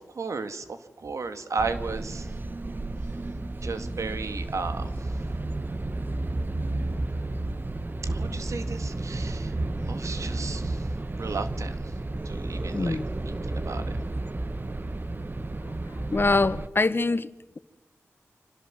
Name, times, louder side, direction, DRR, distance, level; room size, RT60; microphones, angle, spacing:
voice 1, 0.0-2.3 3.6-5.1 8.1-9.6 9.9-10.9 11.2-11.9 12.2-13.9, right 4 dB, 80° right, 2.1 m, -35 dB
sound 1, 1.6-16.7, right 2 dB, 40° right, 1.2 m, -32 dB
voice 2, 16.1-17.3, left 3 dB, 45° left, 1.4 m, -23 dB
26.5 x 26.0 x 7.7 m
cardioid pair, 45°, 5 cm